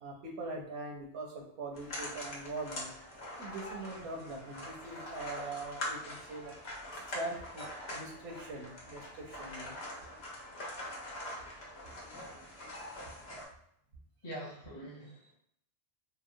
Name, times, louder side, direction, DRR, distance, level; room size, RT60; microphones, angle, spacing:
voice 1, 0.0-2.9 3.4-6.6 7.1-7.7 7.9-9.8, right 2 dB, 80° right, 0 dB, 0.9 m, -42 dB
sound 1, 1.7-13.5, left 1 dB, 80° left, 1.0 m, -43 dB
voice 2, 14.2-15.3, right 1 dB, 30° left, -5 dB, 0.6 m, -44 dB
2.8 x 2.1 x 2.5 m, 0.72 s
omnidirectional pair, 1.1 m